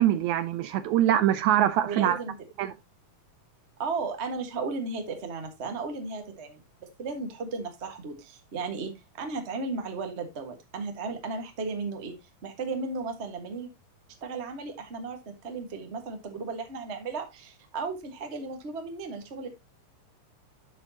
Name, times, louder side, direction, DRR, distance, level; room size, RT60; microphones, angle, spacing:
voice 1, 0.0-2.2 2.6-2.7, right 11 dB, 75° right, 1.8 m, -23 dB
voice 2, 1.8-2.3 3.8-6.6 7.0-8.9 9.2-12.1 12.4-13.7 14.2-19.5, right 4 dB, 40° right, 1.0 m, -35 dB
11.5 x 6.2 x 2.8 m
omnidirectional pair, 3.7 m